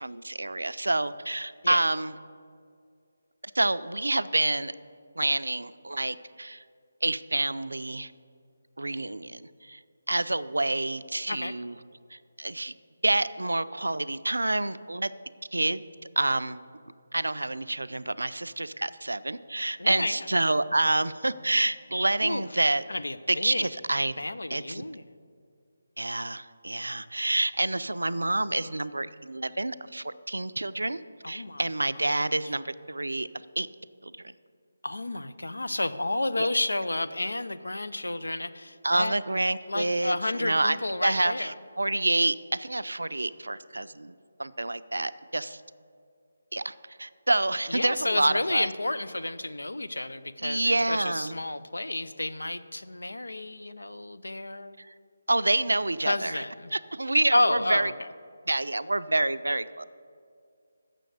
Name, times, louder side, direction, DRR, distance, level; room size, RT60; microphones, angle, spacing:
voice 1, 0.0-2.1 3.5-4.7 5.2-6.6 7.0-8.1 8.8-9.8 10.1-11.7 12.1-12.7 13.0-15.1 15.5-15.8 16.2-16.6 17.1-22.8 23.3-24.1 24.5-24.8 26.0-31.0 31.3-33.3 33.6-33.7 34.0-34.1 36.4-36.5 38.8-44.1 44.4-45.6 46.5-48.7 50.4-51.4 54.8-54.9 55.3-56.4 56.7-57.9 58.5-59.8, right 2 dB, 85° right, 13 dB, 0.4 m, -28 dB
voice 2, 19.8-20.3 22.2-22.4 22.9-23.7 24.2-25.0 31.2-31.7 34.8-39.1 39.7-41.5 47.7-54.8 56.0-56.7 57.3-57.9, left 2 dB, 85° left, 12 dB, 0.5 m, -31 dB
7.5 x 6.3 x 7.9 m, 2.2 s
figure-of-eight pair, 155°, 0 cm